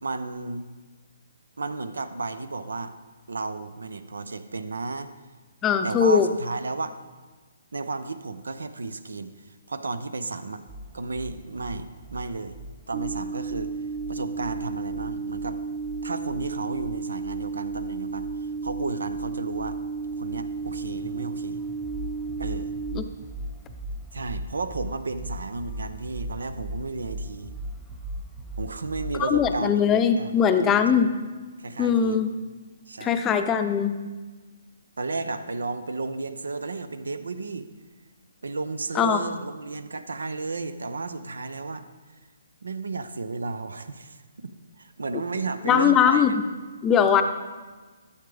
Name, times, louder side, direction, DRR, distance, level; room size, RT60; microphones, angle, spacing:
voice 1, 0.0-0.7 1.6-2.9 3.3-5.1 5.8-7.0 7.7-10.6 10.9-12.6 12.9-13.7 14.1-15.6 16.0-19.8 20.2-21.6 22.4-22.7 24.1-27.6 28.6-31.0 31.6-32.2 32.9-33.2 35.0-37.7 38.4-41.9 42.6-44.2 44.8-46.3, right 3 dB, 85° right, 12 dB, 0.7 m, -33 dB
voice 2, 5.6-6.3 22.9-23.0 29.2-31.1 31.8-32.3 33.0-34.0 38.9-39.4 45.6-46.4 46.8-47.2, left 7 dB, 20° left, 8 dB, 0.6 m, -21 dB
sound 1, 10.7-29.5, right 1 dB, ahead, 1.0 m, -40 dB
sound 2, 12.9-22.9, right 4 dB, 25° right, 1.6 m, -33 dB
13.0 x 7.2 x 3.4 m, 1.3 s
hypercardioid pair, 145°, 0 cm